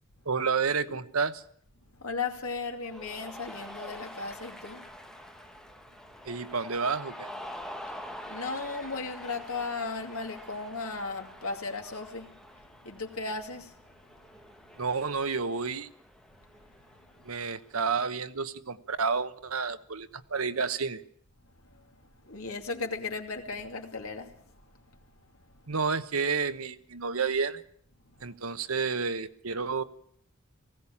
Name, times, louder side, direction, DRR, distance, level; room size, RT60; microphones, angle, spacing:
voice 1, 0.2-1.4 6.2-7.3 14.8-15.9 17.2-21.0 25.7-27.6 28.2-29.8, right 5 dB, 85° right, 1.1 m, -30 dB
voice 2, 2.0-4.8 8.2-12.3 12.8-13.7 22.2-24.3, left 4 dB, 90° left, 2.6 m, -36 dB
Cheering, 2.8-17.7, equal, 5° left, 1.3 m, -46 dB
19.0 x 16.0 x 8.6 m
head